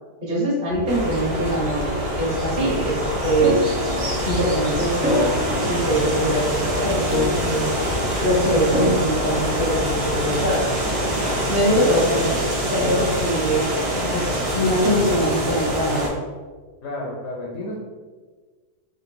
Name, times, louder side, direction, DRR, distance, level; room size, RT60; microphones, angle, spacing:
voice 1, 0.2-1.8 2.2-3.6 4.2-5.3 5.7-7.7 8.2-10.8 11.5-12.2 12.7-13.8 14.1-16.1, equal, 30° right, -6 dB, 1.1 m, -23 dB
Bird vocalization bird call bird song, 0.7-10.8, left 1 dB, 65° right, 0.9 m, -35 dB
sound 1, 0.9-16.1, right 1 dB, 85° right, 1.6 m, -25 dB
sound 2, 1.8-2.4 3.4-4.5 5.0-6.4 7.1-8.2 8.7-9.8, left 1 dB, 15° right, 0.4 m, -26 dB
voice 2, 11.7-12.1 16.8-17.7, left 2 dB, 60° left, -2 dB, 0.8 m, -30 dB
3.8 x 2.6 x 3.7 m, 1.4 s
omnidirectional pair, 1.8 m